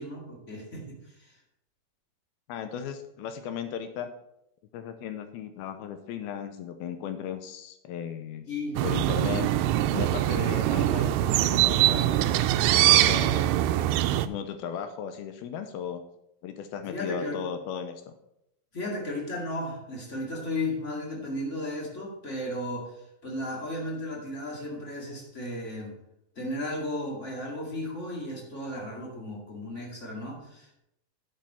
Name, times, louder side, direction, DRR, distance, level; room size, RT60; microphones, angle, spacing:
voice 1, 0.0-1.4 8.5-8.8 16.8-17.4 18.7-25.9 26.3-30.8, left 1 dB, 30° left, -2 dB, 1.5 m, -35 dB
voice 2, 2.5-4.1 4.7-8.5 8.8-9.5 9.9-12.3 12.7-13.6 14.2-16.0 16.4-18.1, left 8 dB, 80° left, 8 dB, 2.5 m, -36 dB
sound 1, 8.8-14.3, right 13 dB, 85° right, 2.6 m, -23 dB
10.5 x 7.6 x 4.3 m, 0.80 s
omnidirectional pair, 4.7 m